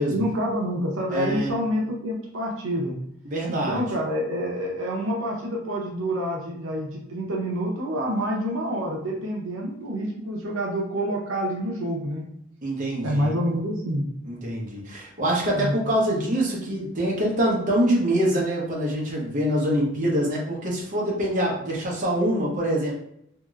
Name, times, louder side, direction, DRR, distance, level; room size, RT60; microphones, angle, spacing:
voice 1, 0.1-2.9 3.5-12.2 13.0-14.0 15.5-15.8, equal, 80° right, -2 dB, 0.7 m, -27 dB
voice 2, 1.1-1.5 3.2-3.8 12.6-13.4 14.2-22.9, equal, 40° right, -4 dB, 0.8 m, -25 dB
2.9 x 2.9 x 2.4 m, 0.74 s
head